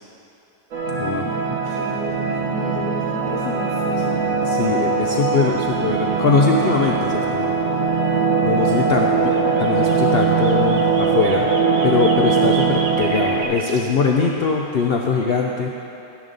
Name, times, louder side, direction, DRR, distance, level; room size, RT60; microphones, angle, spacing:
sound 1, 0.7-13.4, right 5 dB, 70° right, 1.5 m, -21 dB
voice 1, 1.2-4.2, left 6 dB, 90° left, 2 dB, 1.1 m, -34 dB
voice 2, 4.4-7.6 8.4-9.3 9.6-11.5 11.8-15.7, left 5 dB, 55° left, 0 dB, 0.7 m, -21 dB
sound 2, 6.1-6.3 6.5-6.6 9.3-13.8, right 3 dB, 90° right, 1.4 m, -34 dB
12.0 x 10.0 x 4.0 m, 2.9 s
omnidirectional pair, 1.5 m